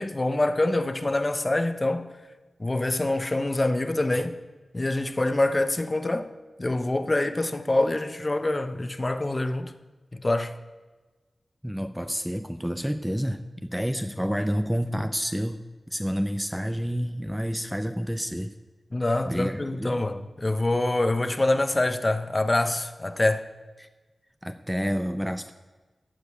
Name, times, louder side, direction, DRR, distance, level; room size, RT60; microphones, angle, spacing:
voice 1, 0.0-2.1 2.6-4.4 4.7-6.3 6.6-9.7 10.1-10.5 18.9-23.5, left 2 dB, 30° left, 0.8 m, -25 dB
voice 2, 11.6-15.6 15.9-18.5 19.3-20.0 23.8-23.9 24.4-25.5, equal, 5° right, 0.5 m, -29 dB
15.0 x 5.2 x 9.3 m
wide cardioid pair, 95°, 0 cm